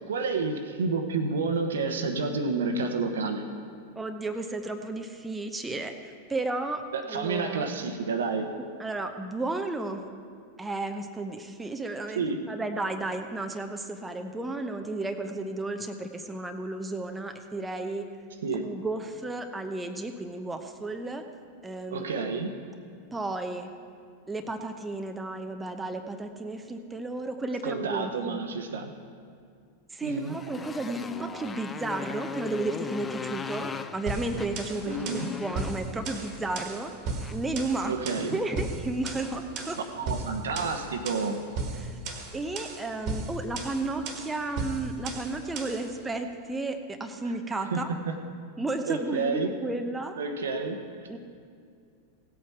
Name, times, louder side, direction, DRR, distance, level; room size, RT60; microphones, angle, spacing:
voice 1, 0.1-3.4 6.9-8.5 12.1-12.4 18.4-18.7 21.9-22.5 27.6-28.9 30.0-30.4 34.9-35.3 37.9-38.4 39.8-41.4 47.7-48.1 48.9-49.5 50.2-50.8, right 4 dB, 65° right, 6 dB, 1.0 m, -30 dB
voice 2, 3.9-5.9 6.3-6.8 7.1-7.7 8.8-10.0 10.6-18.1 18.5-21.2 21.6-22.5 23.1-23.7 24.3-28.4 29.9-36.9 37.3-39.8 41.7-42.0 42.3-47.9 48.6-50.2 51.1-51.2, right 2 dB, 10° right, 5 dB, 0.8 m, -33 dB
Motorcycle, 30.1-37.5, left 5 dB, 15° left, 0.5 m, -39 dB
sound 1, 34.1-45.9, right 3 dB, 40° right, 1.6 m, -36 dB
17.0 x 8.4 x 4.7 m, 2.3 s
figure-of-eight pair, 90°, 0 cm